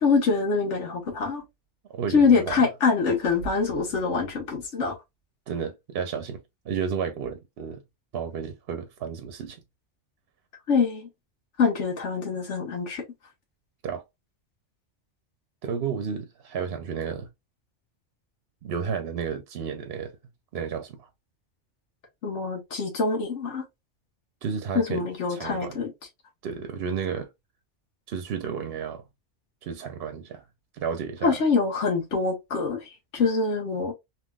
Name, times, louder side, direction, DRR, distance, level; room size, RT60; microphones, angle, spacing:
voice 1, 0.0-1.4 2.1-4.9 10.7-11.1 11.6-13.0 22.2-23.6 24.7-25.9 31.2-33.9, left 4 dB, 75° left, 1.4 m, -24 dB
voice 2, 1.9-2.7 5.5-7.8 8.1-9.6 13.8-14.0 15.6-17.3 18.6-20.1 20.5-21.1 24.4-25.8 26.4-27.3 28.1-29.0 29.6-30.4 30.8-31.4, right 6 dB, 65° right, 0.7 m, -32 dB
3.6 x 2.8 x 2.2 m
omnidirectional pair, 1.2 m